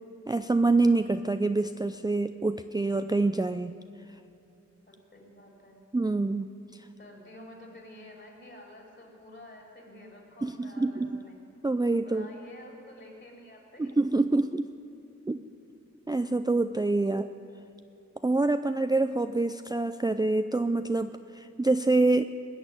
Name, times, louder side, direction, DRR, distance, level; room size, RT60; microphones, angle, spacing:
voice 1, 0.3-3.8 5.9-6.5 10.4-11.2 11.6-12.3 13.8-14.7 15.3-15.4 16.1-17.3 18.2-22.2, right 2 dB, 15° right, 9 dB, 0.4 m, -26 dB
voice 2, 4.9-5.8 7.0-11.4 12.0-14.0 17.0-17.5 18.6-19.0, left 1 dB, 40° left, 0 dB, 4.1 m, -50 dB
20.5 x 6.9 x 9.7 m, 2.9 s
wide cardioid pair, 60°, 29 cm